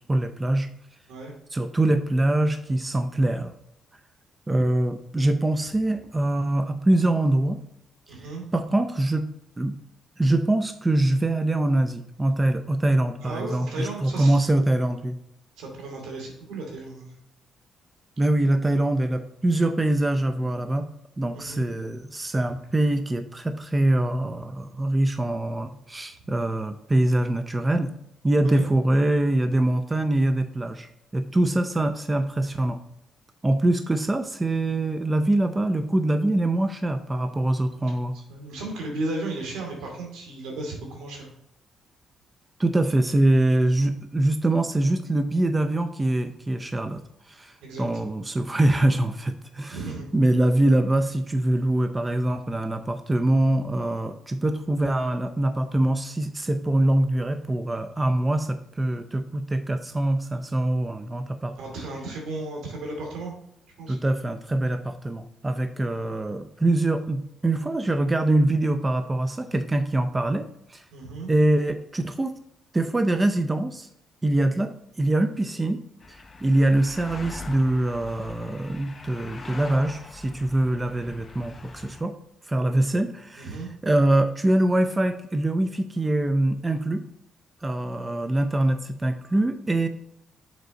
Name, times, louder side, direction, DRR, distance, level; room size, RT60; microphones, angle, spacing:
voice 1, 0.1-0.7 1.5-3.5 4.5-7.6 8.1-8.2 8.5-9.3 9.6-9.7 10.2-15.2 18.2-20.9 21.2-27.9 28.2-32.8 33.4-38.2 42.6-49.8 50.1-61.6 63.9-70.8 71.3-72.4 72.7-73.9 74.2-75.8 76.1-82.1 82.5-87.0 87.6-89.9, right 1 dB, 20° right, 8 dB, 0.5 m, -24 dB
voice 2, 8.1-8.4 13.2-14.6 15.6-17.1 21.3-21.6 28.5-28.6 38.1-41.3 47.6-47.8 49.7-50.1 61.6-63.3 63.8-64.0 70.9-71.3 83.4-83.7, right 2 dB, 90° right, 0 dB, 2.4 m, -35 dB
sound 1, 76.0-82.0, left 3 dB, 30° left, 0.8 m, -42 dB
6.9 x 4.6 x 4.0 m, 0.77 s
cardioid pair, 90°, 0 cm